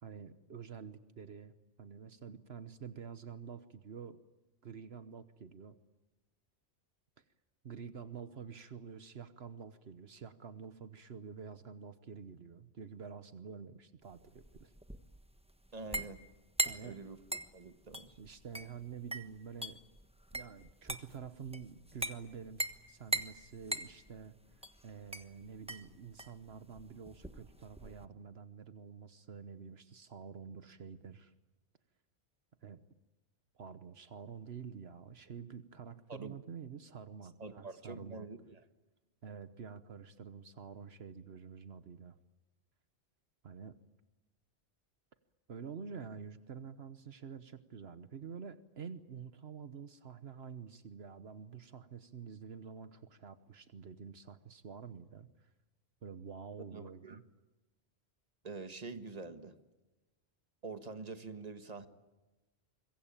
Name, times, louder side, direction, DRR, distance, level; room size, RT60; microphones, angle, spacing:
voice 1, 0.0-1.5 1.8-4.2 4.6-5.8 7.6-14.7 16.7-17.0 18.2-19.8 20.3-31.3 32.6-32.8 33.5-38.3 39.2-42.1 43.4-43.8 45.5-55.5 56.0-57.2, right 6 dB, 70° right, 11 dB, 1.3 m, -48 dB
sound 1, 14.1-28.1, right 2 dB, 5° right, 1.2 m, -41 dB
voice 2, 15.7-16.2 16.8-17.2 17.5-18.2 36.1-36.3 37.4-38.6 56.7-57.2 58.4-59.5 60.6-61.9, right 3 dB, 40° right, 9 dB, 1.6 m, -46 dB
26.0 x 22.5 x 8.8 m, 1.1 s
omnidirectional pair, 1.1 m